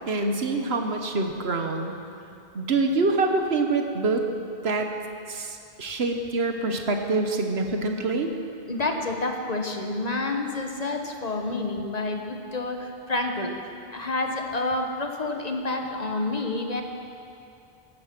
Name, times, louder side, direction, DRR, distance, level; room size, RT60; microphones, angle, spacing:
voice 1, 0.1-2.0 2.5-4.2 4.6-4.9 5.3-8.3, right 3 dB, 80° right, 4 dB, 1.4 m, -25 dB
voice 2, 8.7-13.6 13.9-16.8, left 2 dB, 40° left, 3 dB, 1.2 m, -29 dB
15.5 x 11.5 x 6.0 m, 2.6 s
omnidirectional pair, 1.0 m